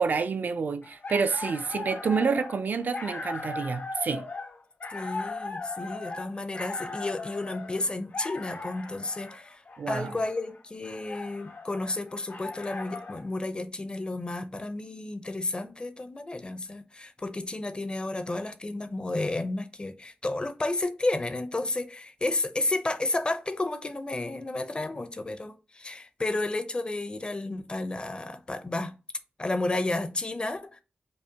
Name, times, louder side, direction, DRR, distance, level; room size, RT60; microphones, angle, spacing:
voice 1, 0.0-4.3 9.8-10.1, right 5 dB, 65° right, 0.4 m, -28 dB
sound 1, 0.8-13.3, left 3 dB, 75° left, 1.2 m, -38 dB
voice 2, 4.9-9.6 9.9-28.9 29.4-30.8, left 2 dB, 30° left, 0.5 m, -32 dB
5.2 x 2.1 x 2.7 m
wide cardioid pair, 100°, 3 cm